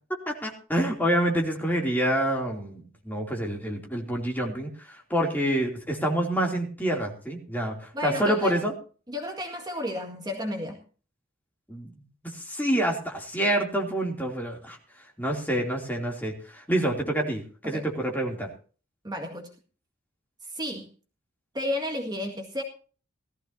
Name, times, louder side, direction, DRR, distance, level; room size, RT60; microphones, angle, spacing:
voice 1, 0.3-8.7 11.7-11.9 12.3-14.8 15.2-18.5, right 1 dB, 10° left, 0 dB, 2.9 m, -27 dB
voice 2, 7.9-8.6 9.1-10.8 17.6-17.8 19.0-19.5 20.4-20.9 21.5-22.6, left 1 dB, 20° right, 0 dB, 2.0 m, -32 dB
18.5 x 14.5 x 2.8 m, 0.39 s
head